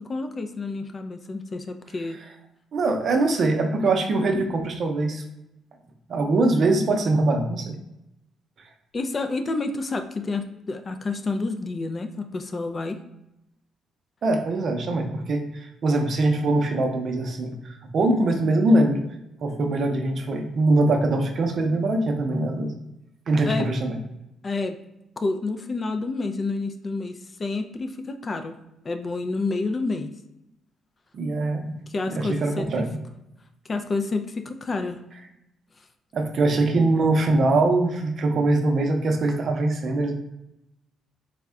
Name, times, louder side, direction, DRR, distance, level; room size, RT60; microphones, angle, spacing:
voice 1, 0.0-2.2 4.3-4.5 8.9-13.0 23.5-23.7 24.4-24.8 25.2-28.6 28.8-30.1 31.9-32.9 33.7-35.0, left 3 dB, 35° left, 7 dB, 0.3 m, -29 dB
voice 2, 2.7-5.2 6.1-7.7 14.2-19.0 19.4-22.7 23.3-23.9 31.1-31.6 32.1-32.9 36.1-40.2, right 2 dB, 55° right, 4 dB, 0.5 m, -22 dB
3.5 x 2.1 x 3.6 m, 0.87 s
cardioid pair, 90°, 0 cm